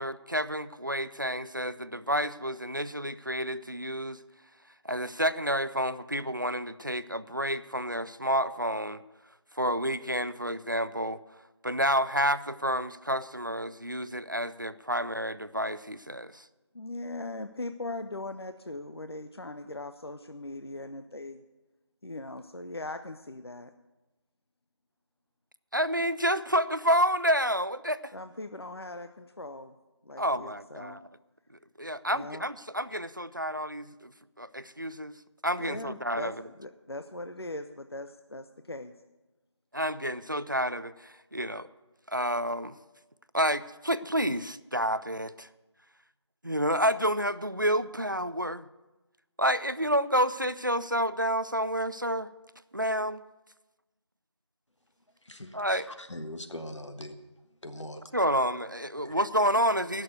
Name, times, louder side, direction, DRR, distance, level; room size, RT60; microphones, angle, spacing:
voice 1, 0.0-4.2 4.8-9.0 9.6-11.2 11.6-16.4 25.7-28.1 30.2-31.0 31.8-34.1 34.4-35.1 35.4-36.3 39.7-41.7 42.1-42.8 43.3-45.5 46.4-48.7 49.4-52.3 52.7-53.2 55.5-55.9 58.1-60.0, equal, 45° right, 15 dB, 0.4 m, -29 dB
voice 2, 16.7-21.4 22.0-23.7 28.1-29.8 30.0-31.0 32.1-32.5 35.6-38.9, left 2 dB, 60° left, 9 dB, 0.6 m, -40 dB
voice 3, 55.2-57.2 57.6-58.1 59.0-59.1, left 1 dB, 80° left, 7 dB, 1.5 m, -41 dB
15.0 x 6.6 x 8.0 m, 1.1 s
figure-of-eight pair, 175°, 15 cm